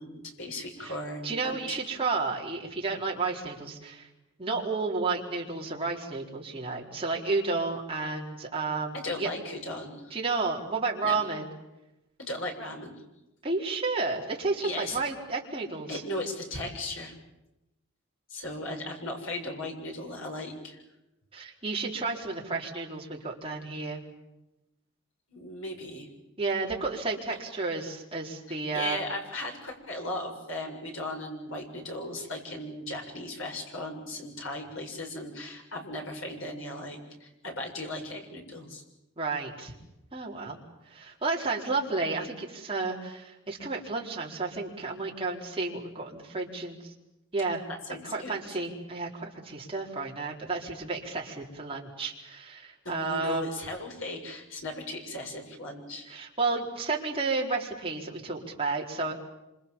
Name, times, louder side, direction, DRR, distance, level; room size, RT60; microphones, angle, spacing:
voice 1, 0.0-1.8 8.9-10.1 11.0-11.2 12.2-13.0 14.6-15.0 15.9-17.1 18.3-20.8 25.3-26.1 28.5-38.8 47.9-48.4 52.8-56.1, left 1 dB, 65° left, 2 dB, 7.1 m, -37 dB
voice 2, 1.2-4.1 4.4-9.3 10.1-11.5 13.4-16.0 21.3-24.0 26.4-29.0 39.2-39.7 40.1-40.6 40.9-46.9 47.3-47.7 48.0-53.4 56.1-59.1, right 3 dB, 25° right, -2 dB, 4.4 m, -32 dB
27.5 x 26.5 x 7.4 m, 0.93 s
head